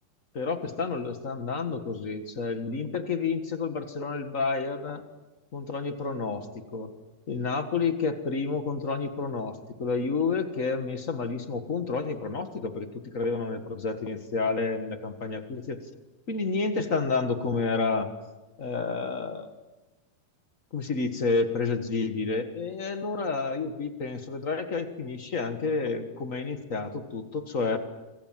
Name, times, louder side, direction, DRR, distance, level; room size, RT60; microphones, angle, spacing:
voice 1, 0.3-5.0 5.5-6.9 7.3-15.8 16.3-18.1 18.6-19.5 20.7-27.8, left 4 dB, 50° left, 7 dB, 0.9 m, -30 dB
28.0 x 25.5 x 7.5 m, 1.1 s
omnidirectional pair, 4.0 m